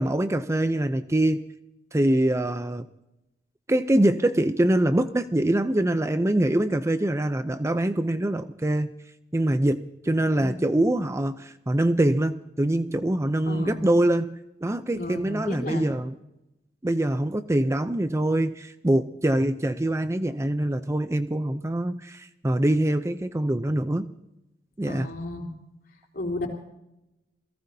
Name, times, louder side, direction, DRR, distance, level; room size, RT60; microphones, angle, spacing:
voice 1, 0.0-1.5 1.9-2.9 3.7-8.9 9.3-16.2 16.8-24.1 24.8-25.1, right 1 dB, 15° right, 10 dB, 0.5 m, -24 dB
voice 2, 10.2-10.6 13.5-13.9 14.9-15.9 24.9-25.5 26.1-26.5, left 1 dB, 50° left, 2 dB, 3.7 m, -33 dB
28.5 x 17.5 x 2.7 m, 0.88 s
head